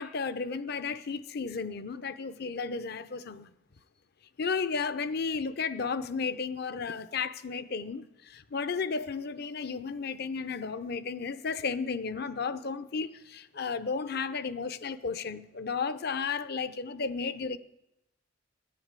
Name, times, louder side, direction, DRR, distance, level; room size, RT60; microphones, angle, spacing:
voice 1, 0.0-3.5 4.4-17.6, left 5 dB, 55° left, 0.7 m, -33 dB
12.5 x 10.5 x 8.2 m
head